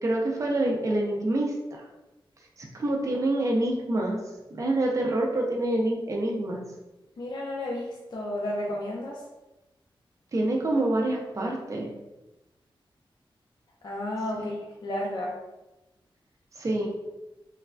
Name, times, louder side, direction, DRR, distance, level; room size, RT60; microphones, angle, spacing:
voice 1, 0.0-1.8 2.7-4.2 4.6-6.6 10.3-11.9 14.4-14.5 16.6-16.9, right 1 dB, 35° right, 0 dB, 0.4 m, -26 dB
voice 2, 7.2-9.2 13.8-15.3, left 1 dB, 50° left, -4 dB, 0.4 m, -32 dB
3.1 x 2.2 x 2.4 m, 1.0 s
wide cardioid pair, 155°, 9 cm